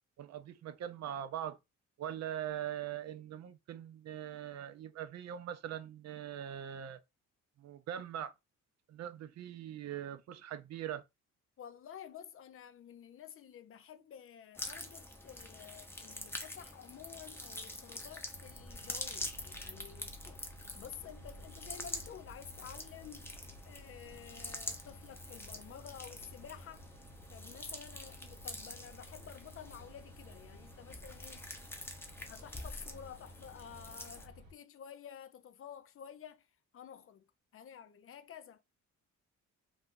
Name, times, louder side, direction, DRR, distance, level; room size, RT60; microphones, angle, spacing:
voice 1, 0.2-1.6 2.0-7.0 7.6-8.3 8.9-11.0, right 10 dB, 60° right, 0.5 m, -42 dB
voice 2, 11.6-20.1 20.7-23.3 23.7-26.9 27.3-31.5 32.3-36.5 36.7-38.6, left 9 dB, 45° left, 0.5 m, -51 dB
sound 1, 14.5-34.3, left 1 dB, 10° left, 0.6 m, -46 dB
sound 2, 18.3-34.5, equal, 90° right, 1.2 m, -55 dB
2.5 x 2.3 x 3.6 m
cardioid pair, 90°, 30 cm